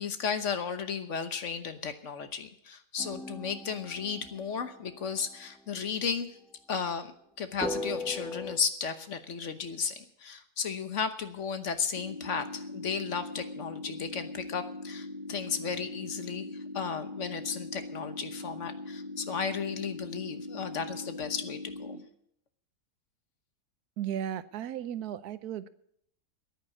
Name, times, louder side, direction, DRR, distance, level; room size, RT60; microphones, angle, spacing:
voice 1, 0.0-6.4 6.7-7.1 7.4-22.0, left 6 dB, 55° left, 9 dB, 1.3 m, -34 dB
sound 1, 3.0-5.4 7.6-8.6, left 1 dB, ahead, 0.5 m, -38 dB
sound 2, 12.0-22.0, left 2 dB, 85° left, 2.6 m, -41 dB
voice 2, 24.0-25.7, right 10 dB, 85° right, 15 dB, 1.2 m, -35 dB
10.5 x 9.3 x 9.7 m, 0.69 s
omnidirectional pair, 1.6 m